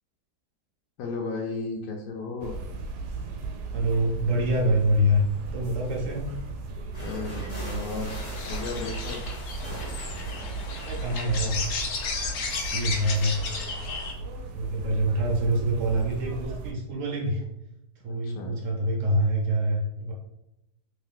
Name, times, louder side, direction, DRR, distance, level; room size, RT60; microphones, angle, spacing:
voice 1, 1.0-2.5 7.0-8.1 8.5-9.3 18.1-18.5, left 3 dB, 90° left, -1 dB, 1.2 m, -34 dB
sound 1, 2.4-16.7, right 3 dB, 80° right, 1.1 m, -36 dB
voice 2, 3.7-5.2 5.5-6.2 10.8-11.6 12.7-13.4 14.5-17.4 18.0-20.1, equal, 60° right, -1 dB, 1.0 m, -25 dB
sound 2, 6.9-13.7, equal, 30° left, 1.1 m, -42 dB
sound 3, 8.1-14.1, left 4 dB, 65° left, 0.6 m, -34 dB
3.1 x 2.7 x 3.6 m, 0.86 s
omnidirectional pair, 1.8 m